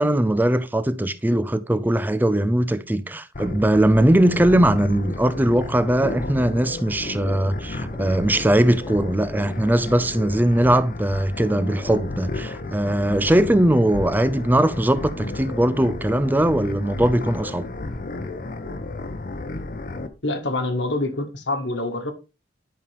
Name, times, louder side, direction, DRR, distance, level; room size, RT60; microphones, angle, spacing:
voice 1, 0.0-17.7, right 1 dB, 10° right, 0.4 m, -20 dB
sound 1, 3.3-20.1, left 2 dB, 45° left, 0.8 m, -33 dB
voice 2, 20.2-22.1, left 2 dB, 70° left, 1.5 m, -26 dB
11.0 x 5.3 x 3.4 m
head